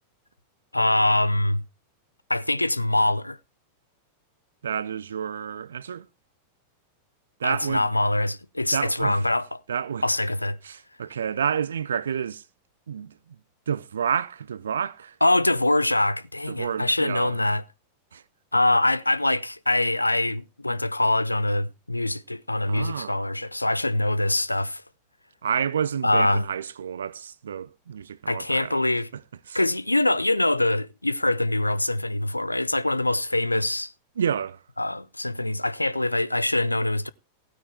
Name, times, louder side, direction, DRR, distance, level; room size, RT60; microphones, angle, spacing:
voice 1, 0.7-1.6 2.3-3.4 7.4-9.6 10.0-10.6 15.2-17.6 18.5-24.8 26.0-26.4 28.3-29.1 29.5-33.9 34.8-37.1, left 1 dB, 85° left, 0.6 m, -24 dB
voice 2, 4.6-6.1 7.4-7.9 8.7-9.2 9.7-10.0 10.6-12.4 12.9-13.1 13.7-15.1 16.5-17.4 18.1-18.2 22.7-23.2 25.4-28.8 29.5-29.6 34.2-34.6, right 8 dB, 65° right, 0.6 m, -29 dB
16.0 x 9.1 x 3.4 m
figure-of-eight pair, 90°, 0 cm